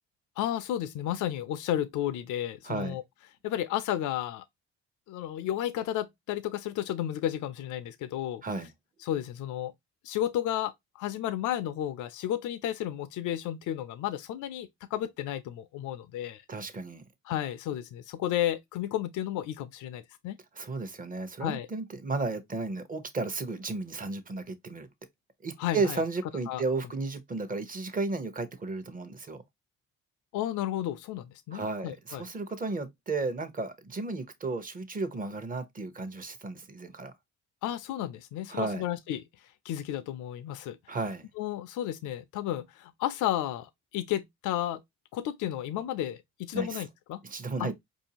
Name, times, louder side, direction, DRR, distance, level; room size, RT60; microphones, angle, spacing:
voice 1, 0.4-3.0 3.4-4.4 5.1-8.4 9.0-9.7 10.0-16.4 17.2-20.4 21.4-21.7 25.6-26.0 26.5-26.6 30.3-32.2 37.6-40.8 41.4-44.8 45.1-47.2 47.6-47.7, left 12 dB, 80° left, 0.5 m, -32 dB
voice 2, 2.6-3.0 8.4-8.7 16.5-17.0 20.5-24.9 25.4-29.4 31.5-37.1 38.5-38.8 40.9-41.3 46.5-46.8 47.2-47.7, right 3 dB, 30° right, 0.8 m, -33 dB
4.7 x 2.7 x 2.8 m
cardioid pair, 90°, 30 cm